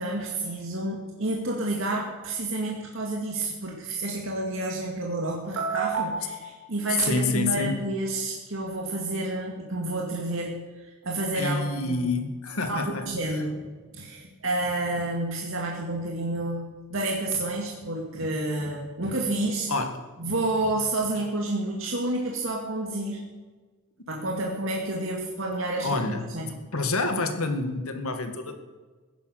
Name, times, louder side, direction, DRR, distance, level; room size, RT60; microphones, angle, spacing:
voice 1, 0.0-12.1 12.7-13.6 13.9-19.7 20.2-23.2 24.1-26.5, right 2 dB, 65° right, -1 dB, 2.1 m, -29 dB
voice 2, 7.0-7.8 11.3-13.1 13.3-13.4 19.7-20.0 25.8-28.6, left 3 dB, 80° left, 7 dB, 2.0 m, -28 dB
15.5 x 10.5 x 6.7 m, 1.4 s
head